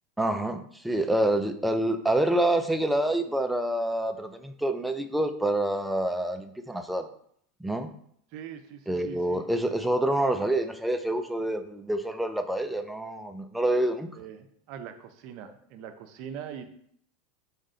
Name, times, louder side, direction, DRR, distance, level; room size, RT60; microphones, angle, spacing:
voice 1, 0.2-7.1 7.6-7.9 8.9-14.1, right 1 dB, 5° right, 7 dB, 0.4 m, -27 dB
voice 2, 8.3-9.5 14.1-16.6, right 8 dB, 55° right, 7 dB, 0.5 m, -42 dB
3.6 x 2.5 x 4.1 m, 0.66 s
hypercardioid pair, 100°, 0 cm